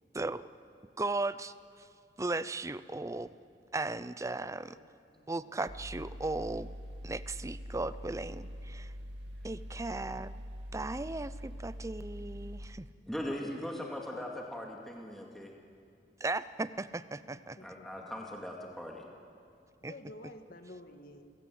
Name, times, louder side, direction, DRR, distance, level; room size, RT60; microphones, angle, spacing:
voice 1, 0.1-0.5 1.0-1.5 2.2-3.4 3.7-4.8 5.3-6.7 7.0-8.9 9.4-10.3 10.7-12.9 16.2-17.6 19.8-19.9, right 2 dB, 20° right, 15 dB, 0.5 m, -36 dB
voice 2, 4.5-5.8 13.2-14.3 17.3-18.3 19.8-21.3, left 1 dB, 55° left, 6 dB, 1.8 m, -53 dB
Mechanical fan, 5.7-12.6, equal, 70° right, 2.4 m, -44 dB
voice 3, 13.1-15.5 17.6-19.1, equal, ahead, -1 dB, 2.2 m, -40 dB
29.5 x 17.0 x 7.8 m, 2.4 s
head